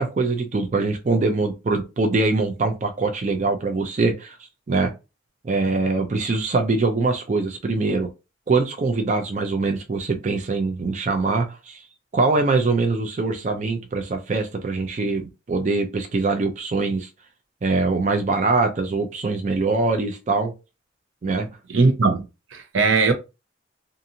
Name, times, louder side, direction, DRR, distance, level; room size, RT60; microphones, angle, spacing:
voice 1, 0.0-4.4 4.7-4.9 5.4-8.1 8.5-11.8 12.1-17.1 17.6-20.5 21.2-21.5, right 3 dB, 40° right, 0.4 m, -23 dB
voice 2, 21.7-22.2 22.5-23.1, right 3 dB, 85° right, 0.6 m, -19 dB
2.6 x 2.5 x 2.7 m
head